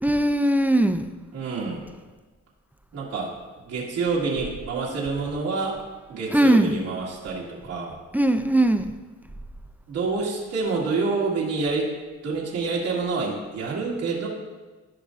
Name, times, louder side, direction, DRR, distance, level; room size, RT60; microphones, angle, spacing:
voice 1, 0.0-1.1 6.3-6.7 8.1-8.9, right 1 dB, 5° right, 8 dB, 0.4 m, -20 dB
voice 2, 1.3-1.8 2.9-3.3 3.7-5.8 6.1-8.0 9.9-11.9 12.2-14.3, right 4 dB, 90° right, -5 dB, 1.8 m, -27 dB
14.5 x 5.3 x 2.5 m, 1.3 s
cardioid pair, 90°, 30 cm